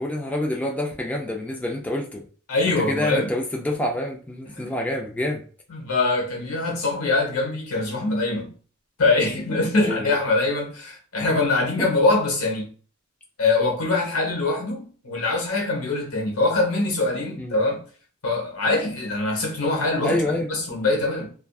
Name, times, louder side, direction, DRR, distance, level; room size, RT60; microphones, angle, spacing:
voice 1, 0.0-2.2 2.7-5.4 9.8-10.2 11.8-11.9 17.4-17.6 20.0-20.5, left 1 dB, 5° left, 0.3 m, -27 dB
voice 2, 2.5-3.3 4.6-4.7 5.7-8.5 9.0-12.7 13.4-17.8 18.2-21.3, left 2 dB, 80° left, 0.9 m, -23 dB
2.5 x 2.3 x 2.3 m
head